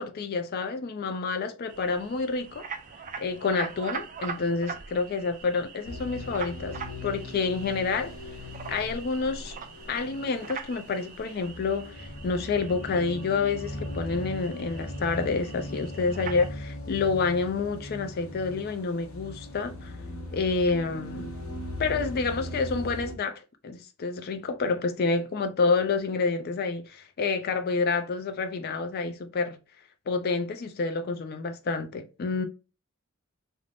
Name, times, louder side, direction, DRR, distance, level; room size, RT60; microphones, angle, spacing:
voice 1, 0.0-2.7 3.2-6.8 7.0-8.1 8.7-9.5 9.9-19.9 20.3-21.3 21.8-29.6 30.1-32.5, left 4 dB, 50° left, 0.4 m, -28 dB
sound 1, 1.7-16.5, right 5 dB, 40° right, 0.3 m, -42 dB
sound 2, 5.8-23.1, left 1 dB, 90° left, 0.7 m, -39 dB
2.5 x 2.0 x 3.2 m
head